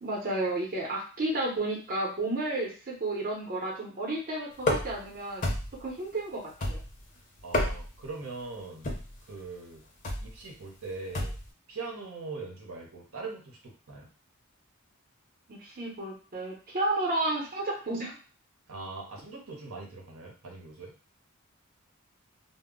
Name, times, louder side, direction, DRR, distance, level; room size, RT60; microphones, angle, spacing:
voice 1, 0.0-5.5 5.8-6.8 15.5-18.1, right 2 dB, 45° right, -1 dB, 0.7 m, -32 dB
sound 1, 4.6-5.1 5.4-5.9 6.6-7.1 7.4-8.0 8.8-9.2 10.0-10.3 11.1-11.5, left 1 dB, 40° left, 0.6 m, -30 dB
voice 2, 7.4-9.0 9.3-9.9 10.2-11.4 11.7-14.1 18.7-20.9, right 3 dB, 85° right, 0 dB, 0.7 m, -41 dB
2.0 x 2.0 x 3.6 m, 0.36 s
head